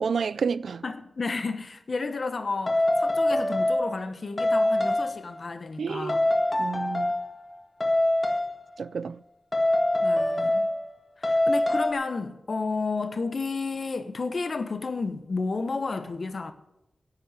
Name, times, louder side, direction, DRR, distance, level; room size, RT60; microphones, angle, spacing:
voice 1, 0.0-0.8 5.8-6.2 6.6-7.2 8.8-9.2, right 5 dB, 85° right, 0.3 m, -29 dB
voice 2, 0.8-6.2 10.0-10.7 11.2-16.5, left 3 dB, 60° left, 1.2 m, -31 dB
sound 1, 2.7-4.1 4.4-5.3 6.1-7.3 7.8-8.5 9.5-10.9 11.2-11.9, left 1 dB, 35° left, 2.0 m, -24 dB
11.0 x 8.8 x 8.2 m
cardioid pair, 50°, 0 cm